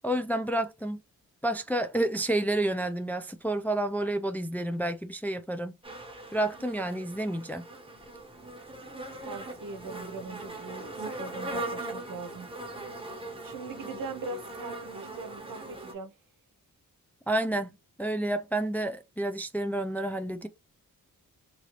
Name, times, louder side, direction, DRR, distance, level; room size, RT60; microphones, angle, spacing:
voice 1, 0.0-1.0 1.4-5.8 6.3-7.6 17.3-20.5, right 1 dB, 5° left, 0.3 m, -30 dB
sound 1, 5.8-15.9, right 2 dB, 15° right, 1.2 m, -40 dB
voice 2, 9.2-12.5 13.4-16.1, right 3 dB, 70° right, 0.8 m, -41 dB
3.0 x 2.7 x 2.9 m
cardioid pair, 80°, 34 cm